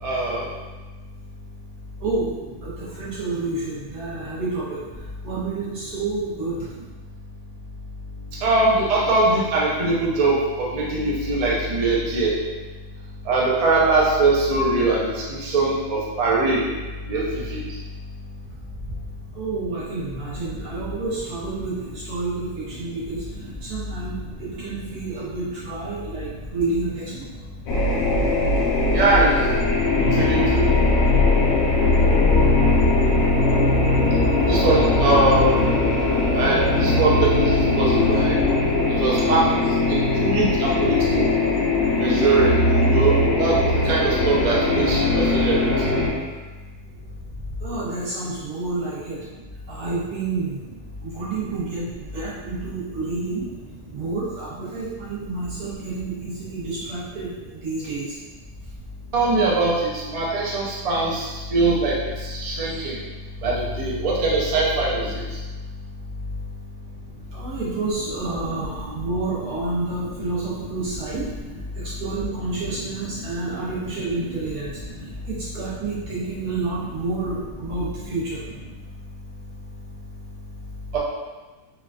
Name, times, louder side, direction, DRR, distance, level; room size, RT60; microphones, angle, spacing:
voice 1, 0.0-0.4 8.4-12.3 13.3-16.6 17.1-17.6 28.9-29.3 30.1-30.8 34.5-35.5 36.3-38.4 39.0-39.5 39.9-41.3 42.0-43.6 43.8-45.6 59.1-61.9 62.2-63.0 63.4-65.2 68.5-68.6 70.2-70.3 73.6-73.7 80.9-81.0, right 2 dB, 65° right, -5 dB, 0.3 m, -21 dB
voice 2, 2.0-4.8 5.2-6.7 19.3-23.2 23.6-27.1 38.0-38.2 47.6-49.3 49.7-50.7 51.0-53.5 53.9-58.2 62.7-62.8 67.3-71.3 71.7-74.8 75.3-78.4, right 3 dB, 85° right, -9 dB, 1.6 m, -29 dB
sound 1, 27.7-46.1, left 2 dB, 70° left, 1.0 m, -20 dB
3.7 x 2.4 x 2.3 m, 1.2 s
omnidirectional pair, 1.6 m